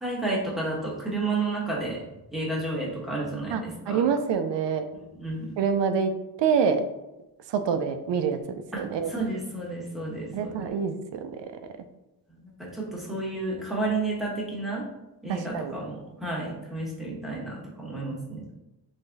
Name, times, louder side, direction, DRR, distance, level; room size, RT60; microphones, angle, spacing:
voice 1, 0.0-2.0 2.3-4.0 5.1-5.5 8.7-8.8 9.1-10.7 12.4-14.8 15.2-18.4, right 2 dB, ahead, -5 dB, 1.3 m, -31 dB
voice 2, 3.5-4.8 5.6-6.1 6.4-6.8 7.5-8.4 8.8-9.1 10.3-11.3 15.3-15.7, right 6 dB, 90° right, 8 dB, 0.6 m, -26 dB
3.8 x 3.5 x 3.9 m, 0.96 s
wide cardioid pair, 130°, 42 cm